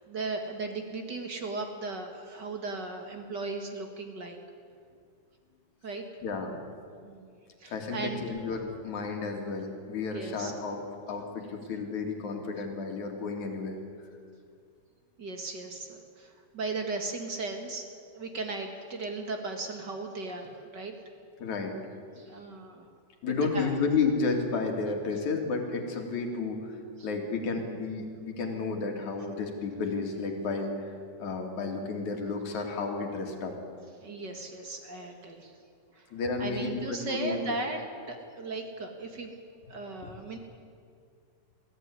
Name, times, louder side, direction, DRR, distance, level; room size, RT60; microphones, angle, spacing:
voice 1, 0.0-4.4 5.8-6.0 7.0-8.3 10.1-10.5 15.2-20.9 22.2-22.9 23.3-23.8 27.0-27.1 34.0-35.6 35.9-36.1 36.4-37.8 38.1-39.3 39.7-40.4, right 3 dB, 40° right, 4 dB, 2.0 m, -37 dB
voice 2, 6.2-6.5 7.7-10.8 11.1-13.8 21.4-21.8 23.2-26.8 27.0-30.9 31.2-33.5 36.1-37.6, left 4 dB, 65° left, 2 dB, 3.7 m, -32 dB
22.0 x 15.0 x 9.8 m, 2.3 s
omnidirectional pair, 3.7 m